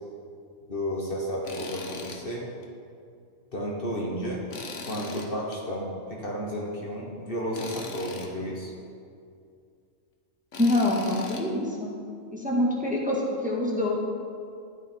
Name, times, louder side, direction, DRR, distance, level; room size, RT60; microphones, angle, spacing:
voice 1, 0.7-2.5 3.5-4.4 4.9-8.7, equal, 45° left, -3 dB, 1.5 m, -32 dB
Tools, 1.4-2.2 2.6-2.7 4.5-5.6 7.5-8.3 10.5-11.4, left 4 dB, 65° left, 1.4 m, -39 dB
voice 2, 10.6-11.9 12.3-14.0, left 1 dB, 5° right, -4 dB, 1.6 m, -25 dB
13.0 x 9.1 x 4.5 m, 2.4 s
omnidirectional pair, 1.4 m